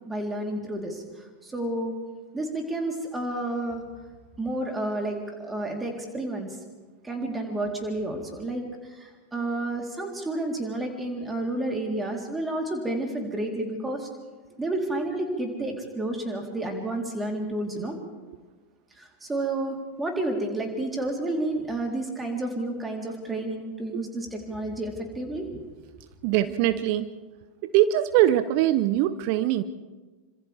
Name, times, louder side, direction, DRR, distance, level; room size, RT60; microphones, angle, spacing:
voice 1, 0.0-1.9 2.3-3.8 4.4-6.6 7.0-14.1 14.6-18.0 19.0-25.6, right 2 dB, 10° right, 1 dB, 3.9 m, -30 dB
voice 2, 26.2-27.1 27.7-29.6, right 13 dB, 45° right, 13 dB, 0.9 m, -22 dB
27.5 x 26.0 x 3.6 m, 1.3 s
figure-of-eight pair, 90°, 0 cm